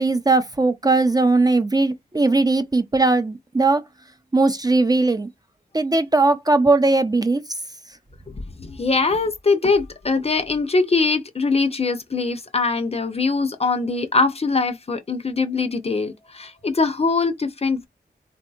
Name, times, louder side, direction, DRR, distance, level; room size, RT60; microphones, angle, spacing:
voice 1, 0.0-3.8 4.3-5.3 5.7-7.4, right 3 dB, 25° right, 0.4 m, -19 dB
voice 2, 8.3-17.9, left 4 dB, 35° left, 0.5 m, -22 dB
3.5 x 2.7 x 2.3 m
wide cardioid pair, 65°, 17 cm